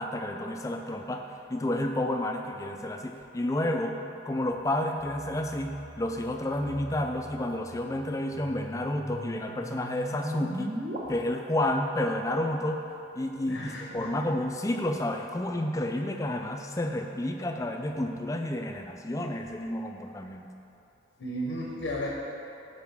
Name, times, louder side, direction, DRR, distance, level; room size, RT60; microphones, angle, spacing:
voice 1, 0.0-4.0 4.2-10.8 11.1-12.8 13.1-20.5, left 1 dB, 15° left, 4 dB, 0.3 m, -30 dB
sound 1, 5.0-11.0, equal, 45° right, 0.8 m, -40 dB
voice 2, 13.5-14.2 21.2-22.1, equal, 80° left, -2 dB, 0.8 m, -34 dB
9.1 x 4.8 x 3.5 m, 2.8 s
head